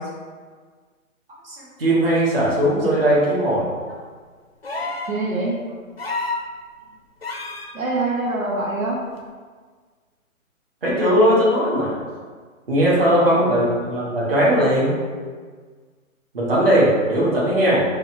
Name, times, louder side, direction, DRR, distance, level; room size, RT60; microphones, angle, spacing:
voice 1, 1.4-3.7 4.8-4.9 10.8-12.0 12.7-14.9 16.3-17.8, equal, 40° right, -7 dB, 1.2 m, -18 dB
sound 1, 4.6-5.2 6.0-6.5 7.2-7.7 9.2-9.3, left 3 dB, 45° left, 0.4 m, -28 dB
voice 2, 5.1-5.6 7.7-9.0 13.0-13.5, right 2 dB, 70° right, -4 dB, 1.0 m, -25 dB
4.0 x 2.4 x 4.2 m, 1.5 s
hypercardioid pair, 180°, 42 cm